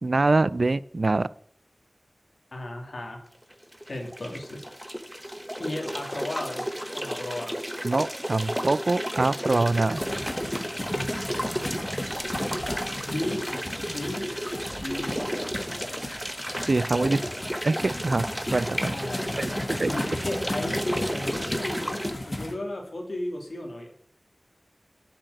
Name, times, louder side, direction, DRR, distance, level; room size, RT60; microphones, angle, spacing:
voice 1, 0.0-1.3 7.8-10.0 16.7-17.2 17.6-18.3 18.5-19.0 19.4-19.5 19.8-19.9, right 3 dB, 70° right, 18 dB, 0.4 m, -24 dB
voice 2, 2.5-3.2 3.9-4.7 5.6-6.6 6.9-7.6 12.7-13.5 13.9-14.3 14.8-15.5 16.9-17.3 18.9-23.9, left 1 dB, 80° left, 1 dB, 2.5 m, -35 dB
sound 1, 3.5-22.1, equal, 5° right, 1.2 m, -33 dB
sound 2, 9.9-22.5, left 1 dB, 35° left, 2.0 m, -35 dB
8.2 x 6.5 x 7.7 m, 0.62 s
wide cardioid pair, 45°, 0 cm